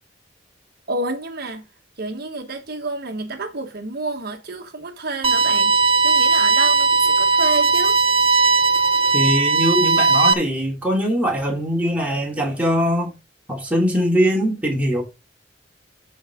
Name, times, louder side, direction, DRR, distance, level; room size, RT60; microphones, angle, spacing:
voice 1, 0.9-1.6 2.0-5.7 6.0-6.9 7.2-7.9, right 2 dB, 55° right, 1.3 m, -29 dB
sound 1, 5.2-10.3, right 4 dB, 30° right, 0.9 m, -17 dB
voice 2, 9.1-13.1 13.5-15.0, equal, 10° right, 3.0 m, -21 dB
13.0 x 4.8 x 3.6 m
head